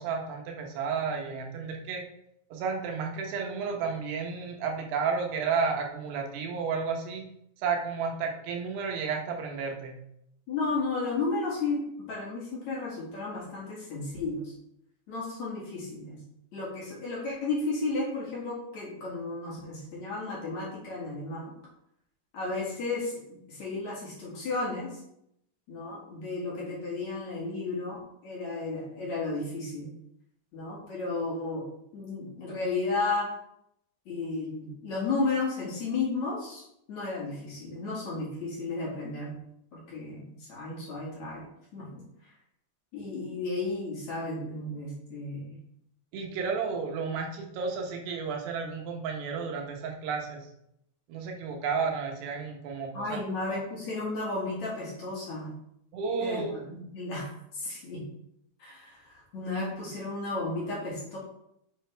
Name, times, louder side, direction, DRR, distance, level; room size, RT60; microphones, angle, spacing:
voice 1, 0.0-2.0 2.5-7.3 7.6-10.0 46.1-50.5 51.1-53.2 53.5-53.6 55.9-56.6, right 5 dB, 80° right, 2 dB, 3.2 m, -32 dB
voice 2, 10.5-11.8 12.1-14.5 15.1-16.2 16.5-21.5 22.3-25.0 25.7-29.9 30.5-31.7 31.9-33.3 34.1-39.3 39.7-42.0 42.9-45.6 52.9-55.5 56.2-58.0 58.6-61.2, left 3 dB, 50° left, -5 dB, 3.0 m, -33 dB
7.8 x 7.3 x 3.4 m, 0.77 s
omnidirectional pair, 4.8 m